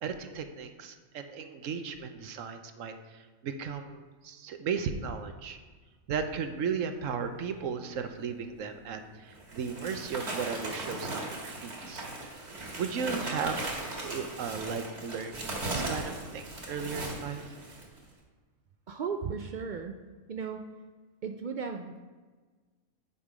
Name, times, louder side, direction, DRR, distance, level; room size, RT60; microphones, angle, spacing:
voice 1, 0.0-5.6 6.1-12.1 12.8-13.7 14.0-17.6, right 6 dB, 70° right, 8 dB, 1.1 m, -36 dB
sound 1, 8.6-8.7 9.3-18.0, right 2 dB, 50° right, 2.1 m, -38 dB
voice 2, 18.9-20.0 20.3-20.7 21.2-22.1, right 6 dB, 90° right, 5 dB, 0.4 m, -36 dB
9.7 x 5.4 x 4.9 m, 1.4 s
omnidirectional pair, 1.4 m